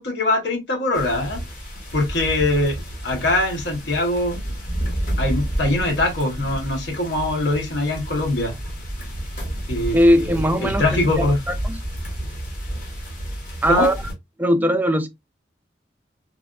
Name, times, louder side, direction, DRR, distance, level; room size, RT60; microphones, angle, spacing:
voice 1, 0.0-1.4 1.9-2.7 3.0-4.4 5.2-8.5 9.7-11.4 13.7-13.9, left 2 dB, 75° left, 1.1 m, -22 dB
sound 1, 0.9-14.1, right 1 dB, 50° left, 1.2 m, -30 dB
voice 2, 9.9-11.8 13.6-14.0 14.4-15.1, equal, 10° right, 0.3 m, -19 dB
3.3 x 2.5 x 2.3 m
head